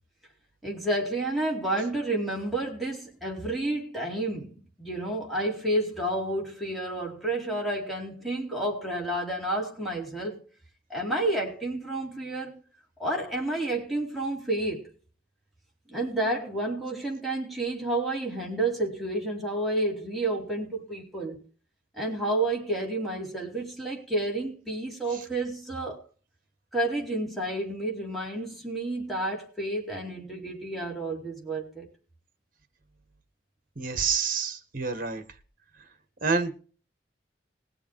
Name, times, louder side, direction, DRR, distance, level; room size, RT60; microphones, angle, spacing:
voice 1, 0.6-10.4 10.9-12.6 13.0-14.9 15.9-21.4 22.0-26.0 26.7-31.9, right 1 dB, ahead, -3 dB, 4.0 m, -30 dB
voice 2, 33.8-35.2 36.2-36.5, right 5 dB, 45° right, 9 dB, 1.7 m, -27 dB
20.5 x 7.2 x 4.8 m, 0.39 s
head